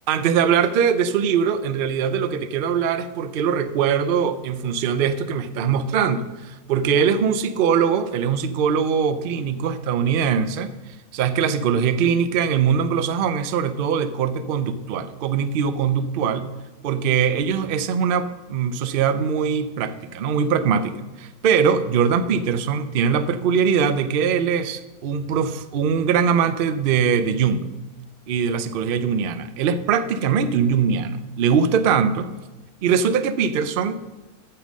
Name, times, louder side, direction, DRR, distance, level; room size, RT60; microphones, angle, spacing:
voice 1, 0.1-10.7 11.1-16.5 16.8-27.6 28.3-32.3 32.8-34.0, right 7 dB, 60° right, 11 dB, 0.5 m, -22 dB
8.8 x 7.0 x 6.2 m, 1.1 s
omnidirectional pair, 1.6 m